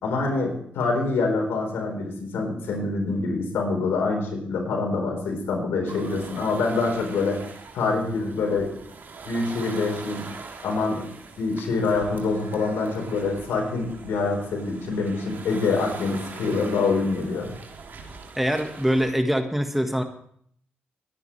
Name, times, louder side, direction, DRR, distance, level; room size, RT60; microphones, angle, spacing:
voice 1, 0.0-7.4 7.7-8.8 9.2-10.4 10.6-11.0 11.4-17.5, left 3 dB, 85° left, 2 dB, 4.2 m, -25 dB
sound 1, 5.9-19.1, right 4 dB, 60° right, 2.9 m, -42 dB
voice 2, 18.4-20.0, equal, 5° right, 5 dB, 1.6 m, -23 dB
23.0 x 10.5 x 3.3 m, 0.64 s
cardioid pair, 65°, 4 cm